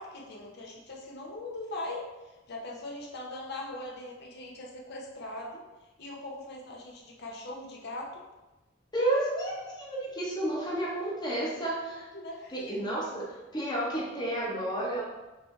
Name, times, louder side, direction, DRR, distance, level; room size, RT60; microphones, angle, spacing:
voice 1, 0.0-5.6 6.0-8.2 12.1-12.6, left 2 dB, 60° left, -2 dB, 0.9 m, -40 dB
voice 2, 8.9-12.1 12.5-13.3 13.5-15.0, right 1 dB, 20° left, -4 dB, 1.0 m, -31 dB
5.2 x 2.8 x 3.2 m, 1.1 s
head